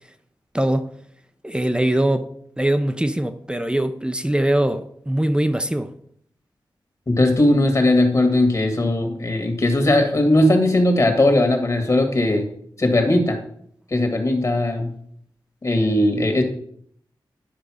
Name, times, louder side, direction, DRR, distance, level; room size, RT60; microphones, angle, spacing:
voice 1, 0.5-0.9 1.4-2.3 2.6-5.9, right 1 dB, 10° right, 0.6 m, -22 dB
voice 2, 7.1-12.5 12.8-13.4 13.9-14.9 15.6-16.4, left 1 dB, 40° left, 1.9 m, -18 dB
10.5 x 5.2 x 4.9 m
cardioid pair, 70°, 8 cm